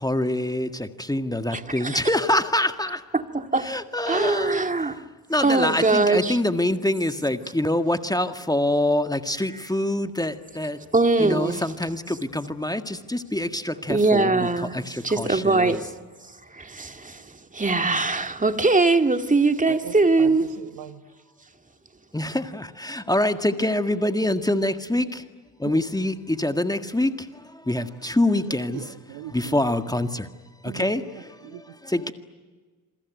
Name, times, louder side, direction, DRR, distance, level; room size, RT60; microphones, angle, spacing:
voice 1, 0.0-3.0 3.6-4.6 5.3-10.8 11.2-14.5 14.7-15.8 22.1-25.2 25.6-27.1 27.7-28.8 29.3-30.3 30.7-31.0 31.9-32.1, left 1 dB, 10° left, 1.8 m, -25 dB
voice 2, 1.5-2.0 3.1-3.8 4.1-5.0 5.4-6.4 10.9-11.7 13.9-14.8 15.0-15.9 16.5-20.6, right 3 dB, 15° right, 2.0 m, -22 dB
voice 3, 19.7-21.0 25.6-25.8 28.7-29.6 30.6-31.7, right 14 dB, 65° right, 1.6 m, -39 dB
27.5 x 23.0 x 9.5 m
hypercardioid pair, 50°, 48 cm